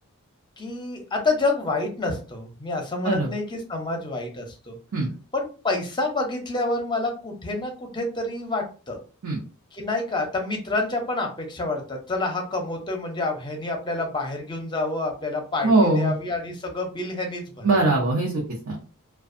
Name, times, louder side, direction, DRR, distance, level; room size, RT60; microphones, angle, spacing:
voice 1, 0.6-4.8 5.3-9.0 9.7-17.9, left 2 dB, 20° left, 3 dB, 0.6 m, -28 dB
voice 2, 15.6-16.1 17.6-18.8, right 2 dB, 75° right, -3 dB, 0.7 m, -21 dB
2.5 x 2.2 x 2.5 m, 0.36 s
head